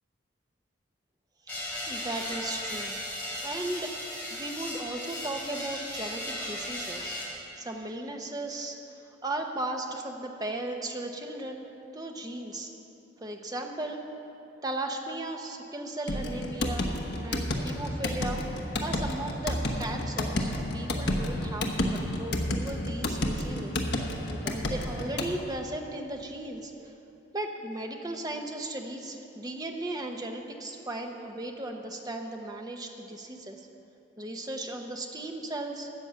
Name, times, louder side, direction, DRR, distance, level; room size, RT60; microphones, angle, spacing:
sound 1, 1.5-7.2, left 1 dB, 10° left, 3.1 m, -36 dB
voice 1, 1.9-3.0 3.4-3.9 4.3-8.8 9.2-11.7 11.9-12.7 13.2-14.0 14.6-16.9 17.2-18.4 18.8-23.8 24.3-26.9 27.3-33.7 34.2-35.9, right 1 dB, 20° right, 3 dB, 0.8 m, -36 dB
sound 2, 16.1-25.3, left 1 dB, 60° left, 1.1 m, -31 dB
13.0 x 8.0 x 7.0 m, 2.9 s
head